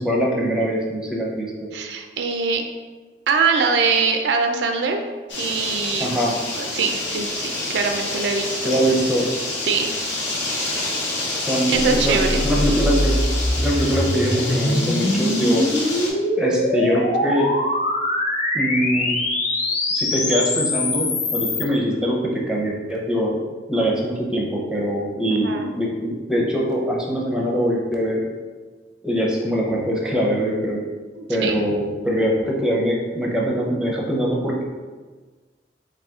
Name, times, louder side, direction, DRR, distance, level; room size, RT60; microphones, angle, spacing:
voice 1, 0.0-1.7 6.0-6.4 8.6-9.3 11.5-13.2 13.6-15.6 16.4-17.5 18.5-19.2 19.9-23.4 23.7-28.2 29.0-30.8 31.3-34.6, equal, 5° right, -3 dB, 0.6 m, -22 dB
voice 2, 1.7-2.6 3.3-5.1 5.4-6.2 6.6-8.8 9.6-10.0 11.7-12.4 25.3-25.7 31.2-31.6, right 5 dB, 65° right, 4 dB, 0.4 m, -23 dB
sound 1, 5.3-16.1, left 2 dB, 75° left, 0.9 m, -28 dB
sound 2, 11.7-21.7, left 1 dB, 40° left, 0.6 m, -23 dB
4.1 x 2.6 x 3.6 m, 1.4 s
head